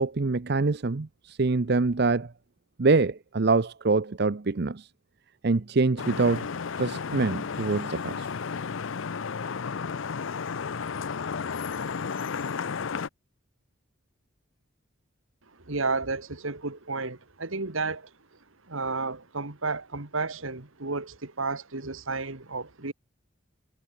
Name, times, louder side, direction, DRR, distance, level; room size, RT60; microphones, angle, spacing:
voice 1, 0.0-2.3 2.8-4.9 5.4-6.5 6.8-8.3, right 3 dB, 50° right, 0.6 m, -25 dB
Vehicle horn car horn honking / Traffic noise roadway noise, 6.0-13.1, left 5 dB, 70° left, 0.6 m, -33 dB
voice 2, 15.7-18.1 18.7-22.9, right 3 dB, 75° right, 2.0 m, -32 dB
head